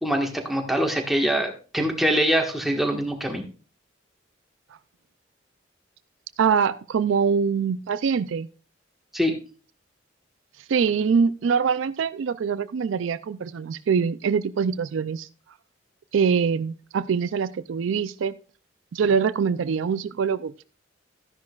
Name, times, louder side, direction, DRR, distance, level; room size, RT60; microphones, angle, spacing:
voice 1, 0.0-3.4 9.1-9.3, equal, ahead, 1.4 m, -24 dB
voice 2, 6.4-8.5 10.7-15.3 16.1-18.3 18.9-20.6, right 6 dB, 80° right, 0.4 m, -24 dB
12.5 x 10.5 x 2.4 m
head